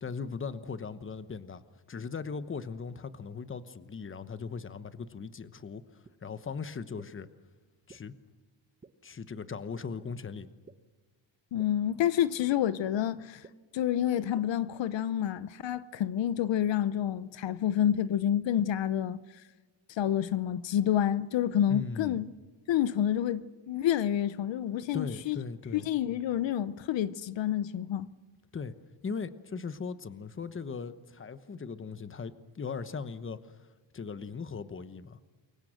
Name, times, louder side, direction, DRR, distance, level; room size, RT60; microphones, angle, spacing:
voice 1, 0.0-1.6 1.9-7.3 7.9-8.1 9.0-10.5 21.7-22.2 24.9-25.9 28.5-28.7 29.0-33.7 33.9-35.2, left 5 dB, 25° left, 1.1 m, -39 dB
sound 1, 6.0-6.1 7.0-7.1 7.9-8.0 8.8-8.9 9.7-9.8 10.7-10.8 11.6-11.7 12.5-12.6 13.4-13.5 14.4-14.5, right 4 dB, 20° right, 0.9 m, -50 dB
voice 2, 11.5-13.4 13.7-19.2 19.9-22.3 22.7-25.4 25.7-28.1, left 10 dB, 75° left, 0.8 m, -28 dB
28.0 x 23.5 x 6.5 m
wide cardioid pair, 140°, 45 cm